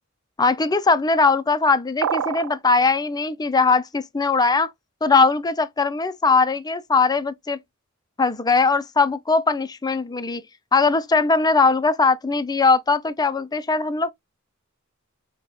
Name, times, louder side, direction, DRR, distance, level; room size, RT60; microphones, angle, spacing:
voice 1, 0.4-4.7 5.0-7.6 8.2-10.4 10.7-14.1, left 4 dB, 20° left, 0.5 m, -20 dB
sound 1, 2.0-2.6, right 8 dB, 85° right, 0.4 m, -25 dB
6.0 x 2.3 x 3.0 m
head